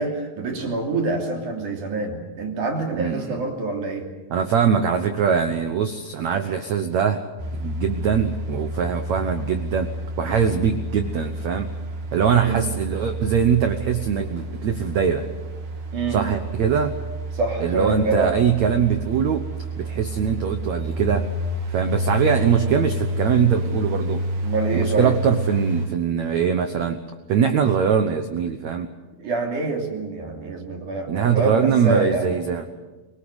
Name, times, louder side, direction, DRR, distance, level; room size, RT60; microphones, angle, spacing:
voice 1, 0.0-4.1 12.3-12.6 15.9-16.3 17.3-18.4 22.4-22.8 24.4-25.2 27.6-27.8 29.2-32.3, right 3 dB, 50° right, 2 dB, 4.2 m, -26 dB
voice 2, 2.9-3.4 4.3-7.2 7.6-9.9 10.2-11.7 12.1-15.2 16.1-16.9 17.6-19.4 19.8-21.2 21.7-24.2 24.7-27.0 27.3-28.9 31.1-32.6, right 7 dB, 85° right, 7 dB, 1.5 m, -22 dB
sound 1, 7.4-25.9, right 1 dB, 65° right, 4.7 m, -29 dB
25.5 x 19.0 x 8.1 m, 1.2 s
omnidirectional pair, 5.0 m